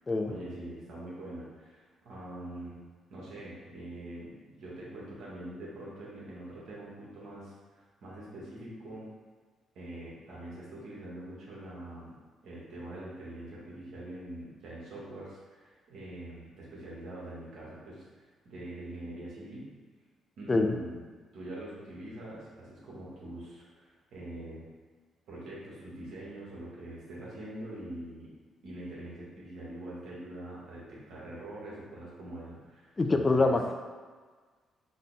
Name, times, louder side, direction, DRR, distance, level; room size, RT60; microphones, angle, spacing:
voice 1, 0.2-2.8 3.1-9.1 9.7-12.2 12.4-19.7 20.4-21.1 21.3-24.6 25.3-28.3 28.6-33.6, right 1 dB, 75° right, -6 dB, 1.4 m, -44 dB
voice 2, 33.0-33.7, left 3 dB, 25° left, 5 dB, 0.4 m, -25 dB
4.1 x 2.2 x 4.0 m, 1.5 s
cardioid pair, 90°, 0 cm